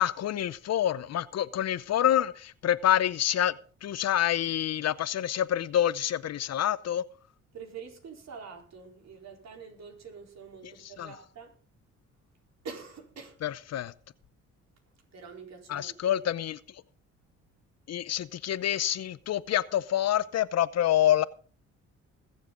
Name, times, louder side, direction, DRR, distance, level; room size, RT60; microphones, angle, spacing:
voice 1, 0.0-3.5 3.8-7.0 11.0-11.1 13.4-13.9 15.7-16.8 17.9-21.2, left 11 dB, 60° left, 0.7 m, -27 dB
voice 2, 7.5-11.5 12.6-13.4 15.1-16.2, right 5 dB, 60° right, 4.1 m, -45 dB
21.0 x 7.5 x 3.9 m
cardioid pair, 90°, 30 cm